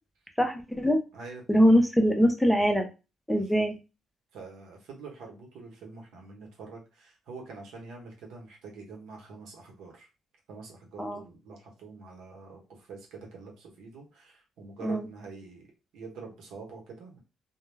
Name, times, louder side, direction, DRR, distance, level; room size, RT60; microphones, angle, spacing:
voice 1, 0.4-1.0 1.5-2.9 3.3-3.8 11.0-11.2 14.8-15.1, equal, 5° left, 4 dB, 0.5 m, -23 dB
voice 2, 1.1-1.7 3.3-3.6 4.3-10.1 10.5-17.2, right 4 dB, 80° right, 0 dB, 0.9 m, -46 dB
2.2 x 2.2 x 3.2 m, 0.29 s
cardioid pair, 90°, 0 cm